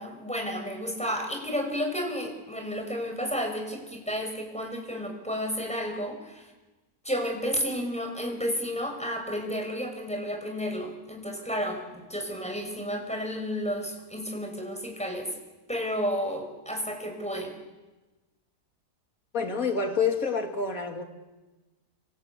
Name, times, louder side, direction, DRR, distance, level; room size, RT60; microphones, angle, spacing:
voice 1, 0.0-6.5 7.0-15.3 15.7-17.5, equal, 5° left, 5.4 m, -32 dB
voice 2, 19.3-21.0, left 5 dB, 55° left, 3.1 m, -27 dB
27.0 x 26.5 x 8.4 m
omnidirectional pair, 1.7 m